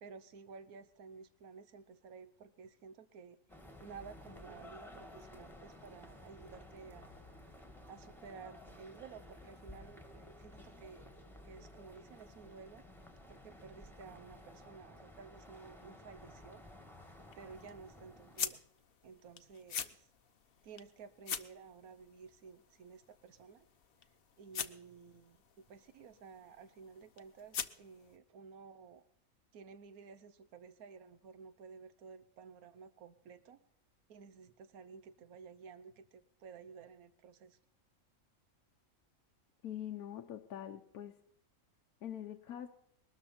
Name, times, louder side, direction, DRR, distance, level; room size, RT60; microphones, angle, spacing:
voice 1, 0.0-3.4 3.8-7.2 7.9-11.1 11.4-12.8 13.3-16.6 17.4-18.6 19.0-20.1 20.6-23.6 24.4-25.4 25.7-29.0 29.5-33.6 34.1-37.6, right 5 dB, 80° right, 13 dB, 1.4 m, -54 dB
sound 1, 3.5-18.5, left 1 dB, ahead, 1.6 m, -54 dB
sound 2, 16.6-28.2, left 8 dB, 50° left, 0.8 m, -46 dB
voice 2, 39.6-41.2 42.0-42.7, left 10 dB, 85° left, 5 dB, 1.3 m, -44 dB
21.0 x 13.0 x 4.3 m, 0.71 s
omnidirectional pair, 1.5 m